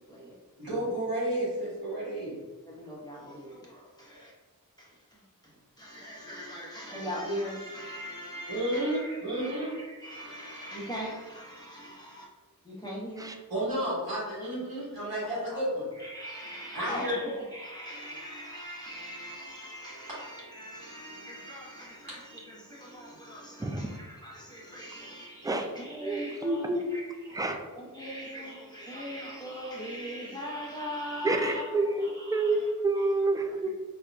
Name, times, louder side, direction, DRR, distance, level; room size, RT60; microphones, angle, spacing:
voice 1, 0.6-2.4 8.5-9.7 13.5-15.9 16.7-17.2 20.1-20.2, right 1 dB, 90° right, -9 dB, 1.4 m, -31 dB
voice 2, 2.7-4.3 4.8-4.9 5.8-12.3 12.6-13.3 15.2-15.6 16.0-27.4 27.8-32.6, equal, 10° left, -6 dB, 0.9 m, -40 dB
voice 3, 23.6-23.9 25.4-25.7 26.0-27.0 27.3-27.7 31.2-33.7, right 2 dB, 10° right, 4 dB, 0.3 m, -28 dB
4.3 x 2.5 x 2.3 m, 1.3 s
wide cardioid pair, 55°, 35 cm